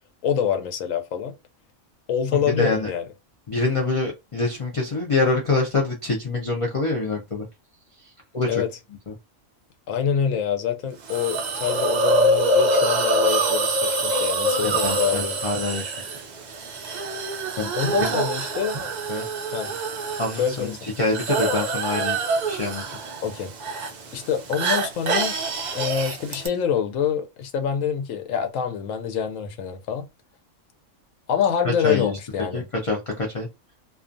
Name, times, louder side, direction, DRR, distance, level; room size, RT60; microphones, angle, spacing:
voice 1, 0.2-1.3 2.1-3.1 8.5-8.7 9.9-15.4 17.7-18.8 19.5-19.7 20.4-20.8 23.2-23.5 24.1-25.4 25.7-30.1 31.3-32.6, left 8 dB, 85° left, 1.0 m, -26 dB
voice 2, 2.6-2.9 3.5-7.5 8.0-8.6 9.1-9.2 14.6-16.1 17.6-18.1 19.1-19.3 20.2-22.2 22.5-22.8 31.8-32.1 32.4-33.5, left 3 dB, 40° left, 0.4 m, -26 dB
Hiss, 11.1-26.5, right 1 dB, 60° right, 0.4 m, -25 dB
2.3 x 2.3 x 2.5 m
omnidirectional pair, 1.3 m